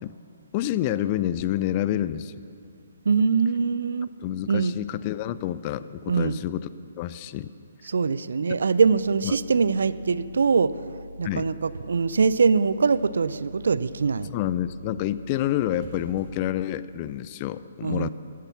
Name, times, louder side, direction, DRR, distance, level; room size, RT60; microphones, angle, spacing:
voice 1, 0.5-2.3 4.2-6.7 7.0-7.5 9.2-9.4 11.2-11.5 14.3-18.1, left 12 dB, 30° left, 15 dB, 0.4 m, -28 dB
voice 2, 3.1-4.1 4.5-4.7 6.1-6.4 7.8-10.7 11.2-14.3 17.8-18.1, right 5 dB, 65° right, 17 dB, 0.4 m, -23 dB
sound 1, 8.5-16.6, equal, 35° right, 4.2 m, -44 dB
14.5 x 11.0 x 7.1 m, 2.4 s
figure-of-eight pair, 130°, 0 cm